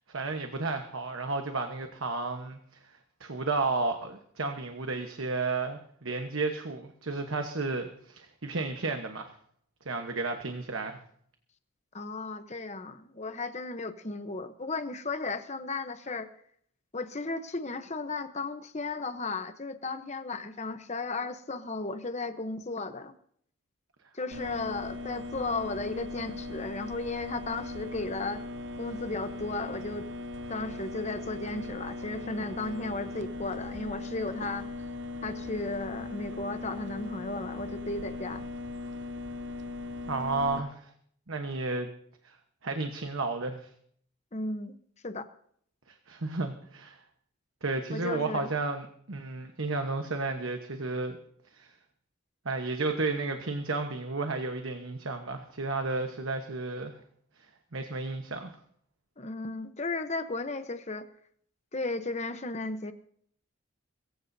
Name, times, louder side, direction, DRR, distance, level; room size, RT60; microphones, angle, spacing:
voice 1, 0.1-2.6 3.2-9.3 9.8-11.0 40.1-40.9 41.3-41.9 42.2-42.4 42.6-43.7 46.1-47.0 47.6-51.2 51.5-51.7 52.4-57.0 57.7-58.5, right 3 dB, 75° right, 5 dB, 1.2 m, -32 dB
voice 2, 11.9-16.3 16.9-23.1 24.1-28.4 28.8-30.1 30.5-34.7 35.2-38.4 44.3-44.8 45.0-45.3 47.9-48.5 59.2-61.1 61.7-62.9, left 3 dB, 35° left, 9 dB, 0.9 m, -35 dB
sound 1, 24.3-40.6, left 3 dB, 60° right, 0.9 m, -39 dB
22.5 x 15.0 x 2.8 m, 0.64 s
head